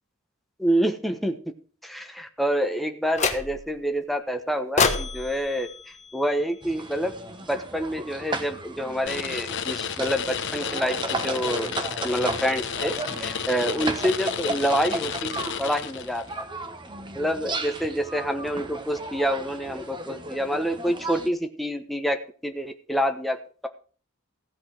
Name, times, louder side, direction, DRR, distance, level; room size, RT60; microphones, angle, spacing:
voice 1, 0.6-1.4 1.8-5.7 6.1-7.1 7.5-11.7 12.0-15.1 15.6-16.4 17.1-23.4, equal, ahead, 5 dB, 1.1 m, -27 dB
sound 1, 3.2-3.8 4.8-7.0, left 5 dB, 35° left, 1.3 m, -28 dB
sound 2, 6.6-21.3, right 2 dB, 20° right, 1.2 m, -35 dB
sound 3, 9.1-16.3, left 7 dB, 55° left, 0.9 m, -32 dB
15.5 x 5.5 x 8.0 m, 0.40 s
head